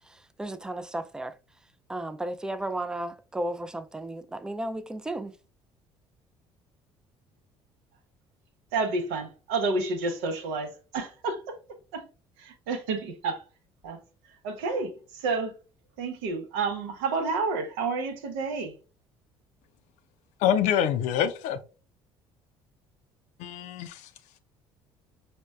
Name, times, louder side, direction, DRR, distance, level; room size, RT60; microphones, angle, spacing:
voice 1, 0.0-1.4 1.9-5.3, right 1 dB, 5° right, 0.3 m, -34 dB
voice 2, 8.7-11.6 11.9-12.1 12.4-13.4 13.8-14.0 14.4-15.5 16.0-18.7, right 3 dB, 80° right, 0.7 m, -30 dB
voice 3, 20.4-21.6 23.4-24.0, left 9 dB, 70° left, 0.4 m, -25 dB
5.1 x 2.1 x 2.3 m
hypercardioid pair, 60°, 13 cm